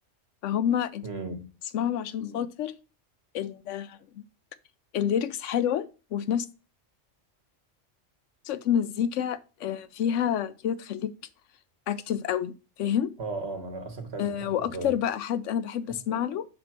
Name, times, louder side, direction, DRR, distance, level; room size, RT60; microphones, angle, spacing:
voice 1, 0.4-1.1 1.7-2.7 3.3-4.2 4.9-6.5 8.4-11.1 11.9-13.1 14.2-16.5, left 9 dB, 75° left, 0.9 m, -28 dB
voice 2, 1.0-1.5 13.2-15.0, right 3 dB, 55° right, 1.5 m, -36 dB
5.1 x 4.4 x 5.8 m
omnidirectional pair, 1.3 m